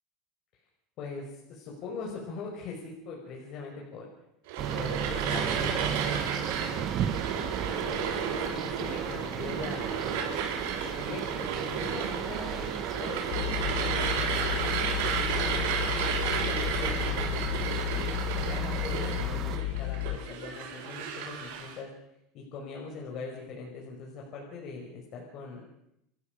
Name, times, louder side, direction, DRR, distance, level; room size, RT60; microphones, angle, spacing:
voice 1, 1.0-4.1 4.8-7.0 8.0-10.0 10.8-14.8 15.2-15.7 16.2-18.1 18.5-21.9 22.3-25.7, left 4 dB, 50° left, -2 dB, 5.9 m, -41 dB
sound 1, 4.5-21.8, right 7 dB, 80° right, 7.5 m, -33 dB
sound 2, 4.6-19.6, right 9 dB, 40° right, 1.8 m, -36 dB
sound 3, 13.3-20.2, left 15 dB, 65° left, 1.8 m, -33 dB
29.0 x 14.0 x 6.8 m, 0.80 s
supercardioid pair, 135°, 0 cm